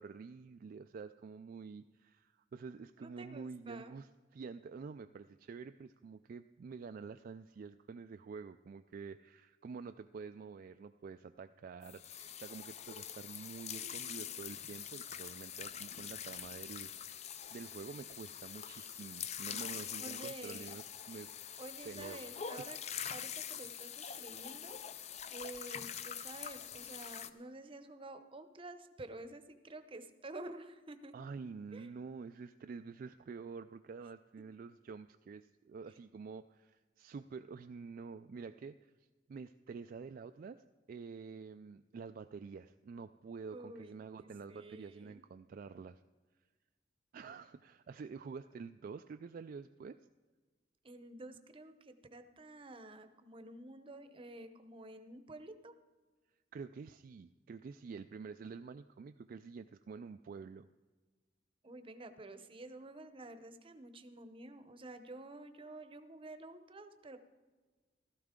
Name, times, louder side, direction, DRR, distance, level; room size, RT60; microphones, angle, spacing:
voice 1, 0.0-21.3 21.9-22.2 31.1-38.9 39.3-46.0 47.1-50.0 56.5-60.7, right 5 dB, 50° right, 9 dB, 0.3 m, -48 dB
voice 2, 3.0-4.0 20.0-20.7 21.6-22.8 23.1-24.8 25.3-31.1 31.7-31.9 43.5-43.9 44.2-45.2 50.8-55.7 61.6-67.2, right 2 dB, 30° right, 10 dB, 0.7 m, -50 dB
sound 1, 11.8-27.3, left 9 dB, 40° left, 0.5 m, -45 dB
15.5 x 13.0 x 3.7 m, 1.3 s
head